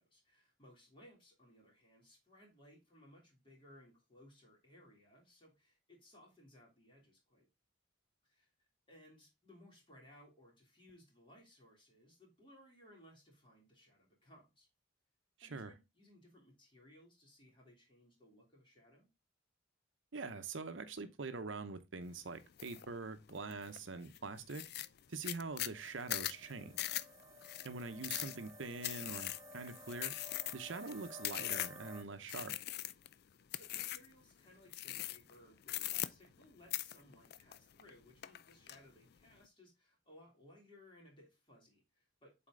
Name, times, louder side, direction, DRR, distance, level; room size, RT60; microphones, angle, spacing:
voice 1, 0.0-7.5 8.2-8.5 8.9-14.7 15.4-19.1 33.5-42.5, left 1 dB, 25° left, 3.2 m, -62 dB
voice 2, 15.4-15.7 20.1-24.6 25.1-26.9 27.6-30.1 30.5-32.5, right 3 dB, 75° right, 0.8 m, -44 dB
sound 1, 22.6-22.8 23.3-23.8 24.1-24.2 24.5-31.9 32.3-33.1 33.5-34.1 34.7-35.3 35.6-36.4 36.7-37.9 38.2-38.8, left 14 dB, 55° left, 0.4 m, -40 dB
sound 2, 25.5-32.0, equal, 15° right, 0.8 m, -55 dB
7.5 x 4.3 x 3.7 m
head